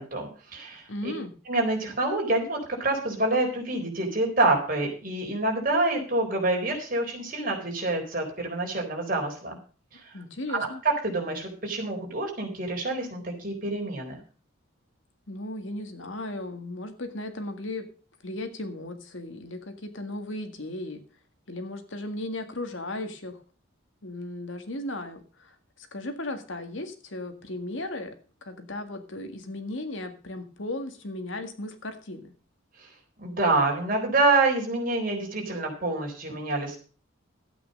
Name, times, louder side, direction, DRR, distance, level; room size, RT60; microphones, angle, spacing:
voice 1, 0.0-1.1 1.5-9.6 9.9-10.1 10.5-10.7 11.0-14.2 32.8-32.9 33.2-36.8, right 2 dB, 45° right, 1 dB, 4.0 m, -27 dB
voice 2, 0.9-1.3 10.1-10.8 15.3-17.9 18.2-21.0 21.5-23.4 24.0-28.1 28.4-32.3, left 1 dB, 65° left, 7 dB, 1.9 m, -36 dB
12.5 x 8.7 x 5.3 m, 0.38 s
head